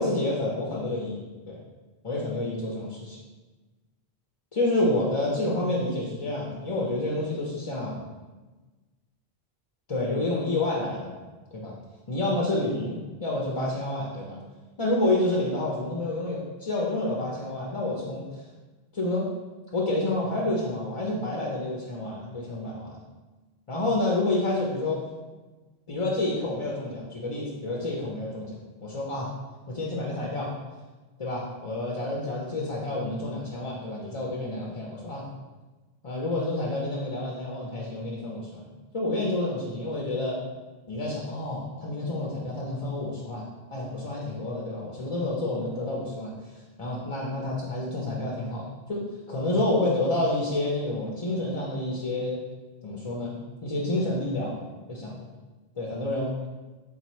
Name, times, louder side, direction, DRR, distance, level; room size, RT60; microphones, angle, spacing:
voice 1, 0.0-1.6 2.0-3.2 4.5-8.1 9.9-11.2 11.5-11.7 12.1-14.4 14.8-18.4 18.9-19.3 19.7-23.0 23.7-25.0 25.9-29.3 29.7-30.5 31.2-35.2 36.0-38.7 38.9-40.4 40.9-43.4 43.7-52.4 52.8-53.3 53.6-54.6 54.9-55.3 55.8-56.3, left 2 dB, 40° left, -4 dB, 0.6 m, -29 dB
4.4 x 4.0 x 3.0 m, 1.2 s
omnidirectional pair, 1.0 m